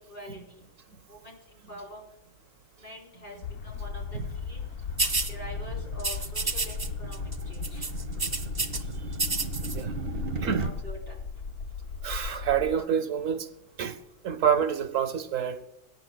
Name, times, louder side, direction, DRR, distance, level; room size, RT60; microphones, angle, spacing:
voice 1, 0.1-0.4 1.1-2.0 2.8-4.6 5.3-7.9 10.4-11.1, equal, 40° left, 4.2 m, -45 dB
sound 1, 3.4-12.8, left 5 dB, 65° left, 0.7 m, -37 dB
sound 2, 4.3-10.7, right 4 dB, 60° right, 1.4 m, -38 dB
sound 3, 5.0-5.3 6.0-6.9 7.1-7.4 7.6-8.8 9.1-9.8, right 3 dB, 25° right, 0.5 m, -29 dB
voice 2, 9.6-9.9 10.4-10.7 12.0-13.5 13.8-14.0 14.2-15.7, right 8 dB, 75° right, 1.2 m, -27 dB
21.5 x 9.7 x 2.2 m
omnidirectional pair, 1.4 m